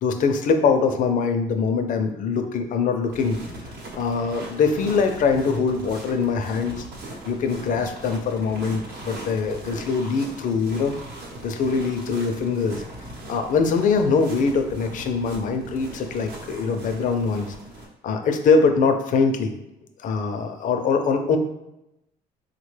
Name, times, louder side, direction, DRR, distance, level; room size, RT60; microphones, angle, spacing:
voice 1, 0.0-3.4 3.9-6.8 7.3-10.9 11.4-12.8 13.3-17.5 18.0-19.5 20.0-21.4, left 5 dB, 50° left, 6 dB, 0.4 m, -23 dB
sound 1, 3.1-17.9, right 1 dB, 65° right, 0.9 m, -39 dB
3.3 x 2.1 x 3.2 m, 0.88 s
cardioid pair, 110°, 17 cm